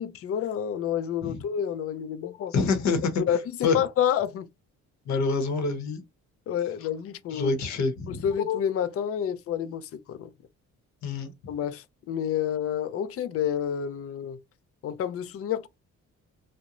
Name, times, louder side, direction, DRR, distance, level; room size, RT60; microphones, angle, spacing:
voice 1, 0.0-2.5 3.3-4.5 6.5-7.6 8.1-10.3 11.5-14.4 14.8-15.7, left 9 dB, 50° left, 0.4 m, -29 dB
voice 2, 2.5-3.1 3.6-3.8 5.1-6.0 7.3-8.2 11.0-11.3, left 4 dB, 65° left, 0.8 m, -26 dB
2.4 x 2.1 x 2.8 m
cardioid pair, 90°, 30 cm